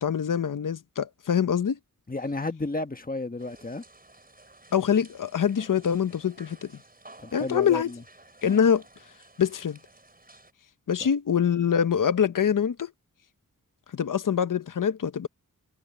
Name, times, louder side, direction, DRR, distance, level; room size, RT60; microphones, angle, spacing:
voice 1, 0.0-1.8 4.7-6.7 7.3-7.9 8.4-8.8 9.4-9.8 10.9-12.9 13.9-15.3, left 8 dB, 65° left, 0.8 m, -24 dB
voice 2, 2.1-3.8 7.2-8.0, left 2 dB, 25° left, 1.4 m, -32 dB
sound 1, 3.4-10.5, right 2 dB, 25° right, 5.4 m, -53 dB
wide cardioid pair, 80°, 34 cm